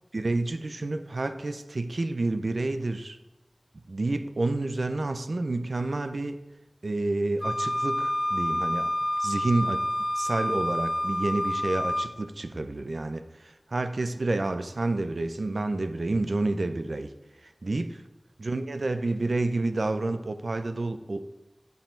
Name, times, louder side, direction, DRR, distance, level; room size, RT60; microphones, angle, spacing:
voice 1, 0.1-3.2 3.9-6.4 6.8-8.9 9.2-9.8 10.2-17.1 17.6-18.0 18.4-21.3, right 2 dB, 90° right, 9 dB, 0.5 m, -29 dB
Wind instrument woodwind instrument, 7.4-12.1, left 1 dB, 10° left, 1.4 m, -28 dB
8.9 x 5.5 x 4.4 m, 0.99 s
wide cardioid pair, 45°, 0 cm